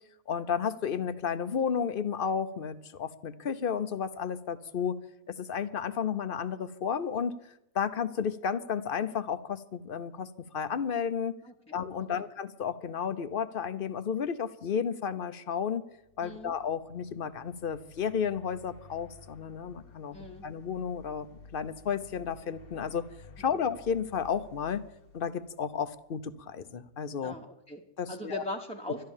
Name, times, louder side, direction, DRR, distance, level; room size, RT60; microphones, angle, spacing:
voice 1, 0.3-5.0 5.3-7.4 7.7-11.4 11.7-15.8 16.2-20.2 20.4-21.3 21.5-23.1 23.4-24.8 25.1-27.4 28.0-28.4, left 7 dB, 50° left, 12 dB, 0.8 m, -32 dB
voice 2, 11.4-11.8 12.2-12.3 16.2-16.5 20.1-20.5 23.4-23.5 27.2-27.8 28.1-29.1, left 1 dB, 5° left, -1 dB, 0.8 m, -40 dB
sound 1, 16.0-26.2, left 3 dB, 80° left, 1.8 m, -54 dB
12.5 x 12.5 x 7.3 m, 0.85 s
omnidirectional pair, 1.5 m